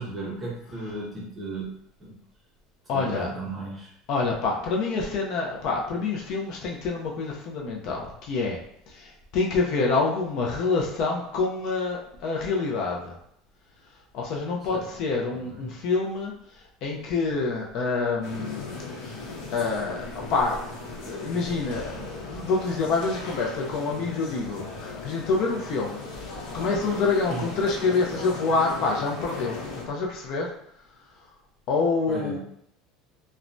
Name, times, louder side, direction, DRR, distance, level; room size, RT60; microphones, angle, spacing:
voice 1, 0.0-1.7 2.0-2.1 2.9-3.9 14.7-14.9 15.6-15.7 27.3-27.4 32.1-32.4, right 2 dB, 15° right, -4 dB, 0.6 m, -35 dB
voice 2, 2.9-3.3 4.1-8.6 8.9-13.2 14.1-16.3 16.8-18.6 19.5-26.0 26.5-29.6 29.9-30.5 31.7-32.4, left 4 dB, 40° left, -1 dB, 0.4 m, -27 dB
sound 1, 18.2-29.8, left 3 dB, 65° left, 0.9 m, -37 dB
3.1 x 2.1 x 2.5 m, 0.71 s
cardioid pair, 180°, 0 cm